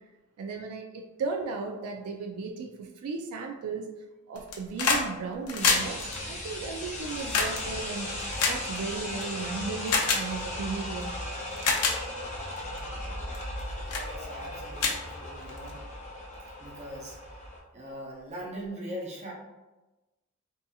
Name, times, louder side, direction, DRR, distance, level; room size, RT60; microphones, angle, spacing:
voice 1, 0.4-3.9 4.3-11.1 13.1-13.2 15.2-15.3, right 4 dB, 80° right, 4 dB, 0.3 m, -36 dB
sound 1, 4.3-5.1 5.3-9.2 9.9-10.2 11.0-11.1 11.5-12.0 12.6-12.8 13.3-13.6 13.9-14.1 14.4-14.5 14.8-15.7 16.9-17.0, left 4 dB, 80° left, 0.5 m, -27 dB
sound 2, 5.6-17.6, left 1 dB, 30° left, 0.6 m, -37 dB
voice 2, 14.0-15.8 16.6-17.2 17.7-19.3, right 1 dB, 30° right, -3 dB, 0.6 m, -40 dB
2.8 x 2.6 x 2.3 m, 1.1 s
head